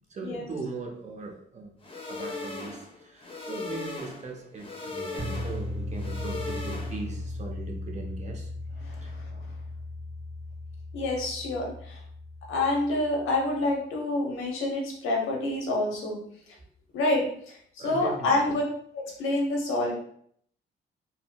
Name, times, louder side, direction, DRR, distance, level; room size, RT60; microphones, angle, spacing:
voice 1, 0.1-1.7 2.1-8.5 9.0-9.1 17.8-18.6, right 3 dB, 35° right, 1 dB, 0.8 m, -39 dB
sound 1, 1.8-7.2, left 3 dB, 25° left, 0.7 m, -38 dB
sound 2, 5.2-13.3, left 1 dB, 15° right, 0.4 m, -37 dB
voice 2, 8.8-9.2 10.9-12.0 12.5-16.2 16.9-18.6 18.9-19.9, left 2 dB, 85° left, -1 dB, 0.9 m, -28 dB
4.1 x 2.0 x 2.2 m, 0.63 s
cardioid pair, 90°, 20 cm